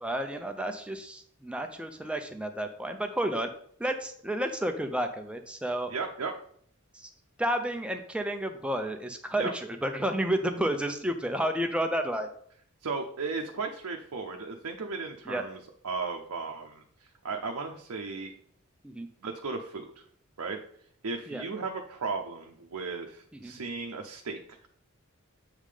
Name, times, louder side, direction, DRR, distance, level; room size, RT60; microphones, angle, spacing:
voice 1, 0.0-3.5 3.8-5.9 6.9-7.1 7.4-12.3 15.3-15.4 18.8-19.1 21.3-21.4 23.4-23.5, right 1 dB, 5° right, 5 dB, 0.5 m, -31 dB
voice 2, 5.9-6.3 9.4-9.5 12.8-15.6 15.8-16.8 17.2-18.3 19.2-19.9 20.4-20.6 21.0-24.4, right 4 dB, 75° right, 2 dB, 0.6 m, -35 dB
7.4 x 3.7 x 4.9 m, 0.62 s
head